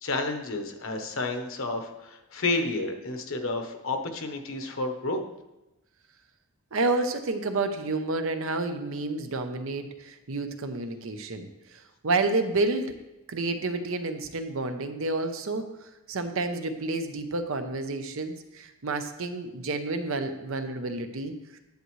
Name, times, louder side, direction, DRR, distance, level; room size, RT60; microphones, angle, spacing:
voice 1, 0.0-5.2, left 2 dB, 60° left, 5 dB, 1.0 m, -30 dB
voice 2, 6.7-12.9 13.3-21.6, right 3 dB, 65° right, 7 dB, 0.8 m, -30 dB
10.5 x 8.0 x 3.2 m, 0.99 s
head